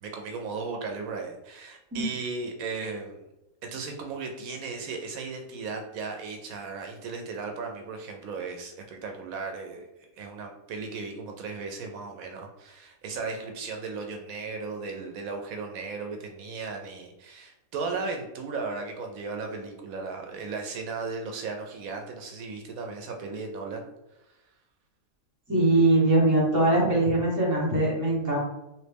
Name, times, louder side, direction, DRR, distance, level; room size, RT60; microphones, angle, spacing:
voice 1, 0.0-3.3 3.6-9.9 10.2-23.8, right 4 dB, 80° right, 3 dB, 1.0 m, -36 dB
voice 2, 25.5-28.4, right 2 dB, 15° right, -5 dB, 1.0 m, -22 dB
3.1 x 2.6 x 3.4 m, 0.95 s
omnidirectional pair, 1.5 m